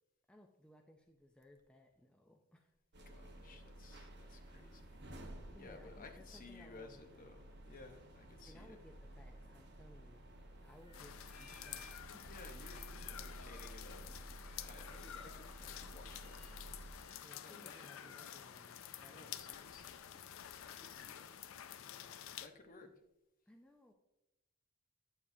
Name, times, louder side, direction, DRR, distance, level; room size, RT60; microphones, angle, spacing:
voice 1, 0.3-2.7 5.5-7.4 8.5-10.3 10.6-12.2 17.2-19.5 20.1-20.2 23.5-23.9, left 1 dB, 5° left, 2 dB, 0.4 m, -62 dB
sound 1, 2.9-16.9, right 1 dB, 55° right, 1.1 m, -53 dB
voice 2, 3.1-5.0 5.3-8.8 12.2-14.2 14.6-16.5 17.4-18.2 19.1-20.1 20.6-21.4 22.4-22.9, left 3 dB, 40° left, 5 dB, 0.8 m, -57 dB
sound 2, 10.7-12.1 12.3-13.9 14.4-19.3, right 2 dB, 30° right, 1.6 m, -66 dB
sound 3, 10.9-22.5, left 10 dB, 65° left, 0.4 m, -50 dB
8.5 x 6.9 x 2.7 m, 0.91 s
head